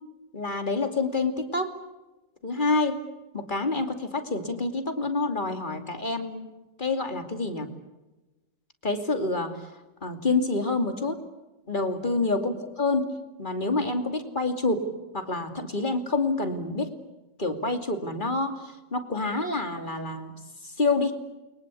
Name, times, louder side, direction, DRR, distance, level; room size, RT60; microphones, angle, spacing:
voice 1, 0.3-1.8 2.4-3.0 3.3-6.5 6.8-7.7 8.8-9.7 10.0-11.2 11.7-16.9 17.4-20.3 20.6-21.1, left 3 dB, 25° left, 6 dB, 2.7 m, -27 dB
29.5 x 23.5 x 8.4 m, 1.1 s
omnidirectional pair, 1.9 m